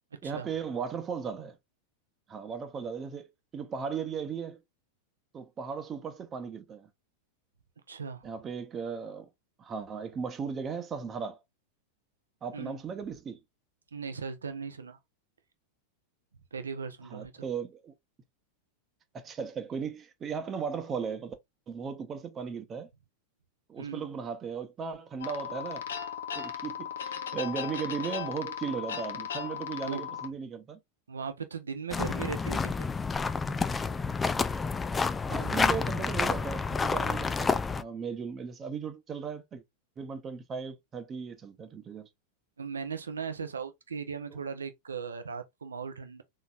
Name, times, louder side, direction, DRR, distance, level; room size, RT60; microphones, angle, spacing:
voice 1, 0.2-1.6 2.3-4.6 5.3-6.9 8.2-9.3 9.6-11.4 12.4-13.4 17.1-17.9 19.1-21.3 21.7-22.9 23.7-25.8 26.3-30.8 35.3-39.6 40.0-42.1, right 6 dB, 25° right, 0.9 m, -36 dB
voice 2, 7.9-8.3 12.5-12.8 13.9-15.0 16.5-17.4 23.8-24.1 29.8-30.2 31.1-32.7 42.6-46.2, right 6 dB, 70° right, 0.8 m, -38 dB
sound 1, 25.2-30.3, left 8 dB, 65° left, 0.7 m, -37 dB
sound 2, 31.9-37.8, left 4 dB, 15° left, 0.3 m, -29 dB
4.0 x 3.8 x 2.4 m
figure-of-eight pair, 90°, 0 cm